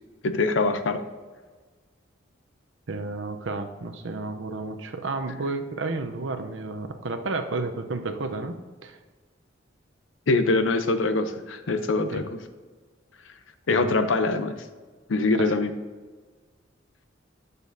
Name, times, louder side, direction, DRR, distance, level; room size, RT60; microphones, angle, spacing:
voice 1, 0.2-1.0 10.3-12.2 13.7-14.5 15.1-15.7, left 3 dB, 85° left, 10 dB, 0.6 m, -23 dB
voice 2, 2.9-8.6 8.8-9.0 12.1-12.2 13.7-13.9 15.3-15.5, right 3 dB, 75° right, 6 dB, 0.7 m, -31 dB
9.2 x 6.7 x 2.7 m, 1.4 s
head